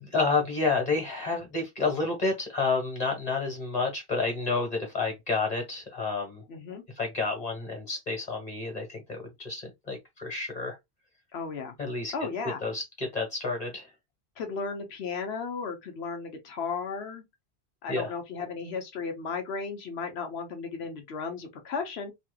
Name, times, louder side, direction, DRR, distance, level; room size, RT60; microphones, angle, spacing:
voice 1, 0.1-6.4 7.0-10.8 11.8-12.1 12.6-13.9 17.9-18.1, left 3 dB, 40° left, 1.5 m, -30 dB
voice 2, 6.5-6.8 11.3-11.8 12.1-12.6 14.4-17.2 17.8-22.1, left 5 dB, 80° left, 1.2 m, -35 dB
3.1 x 2.8 x 2.3 m
omnidirectional pair, 1.1 m